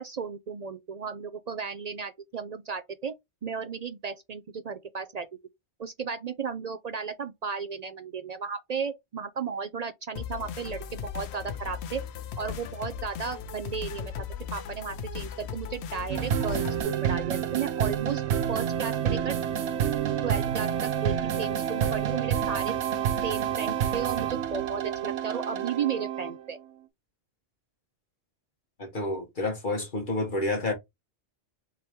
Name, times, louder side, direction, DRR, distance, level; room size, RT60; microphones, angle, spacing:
voice 1, 0.0-3.1 3.4-5.3 5.8-12.0 12.4-14.1 14.5-18.2 18.5-19.4 20.2-22.7 23.2-26.6, right 6 dB, 55° right, 0.4 m, -34 dB
sound 1, 10.2-16.8, left 7 dB, 75° left, 0.8 m, -37 dB
sound 2, 16.1-26.5, right 9 dB, 90° right, 0.9 m, -28 dB
voice 2, 28.8-30.7, left 2 dB, 50° left, 1.2 m, -29 dB
3.8 x 2.9 x 4.4 m
omnidirectional pair, 1.1 m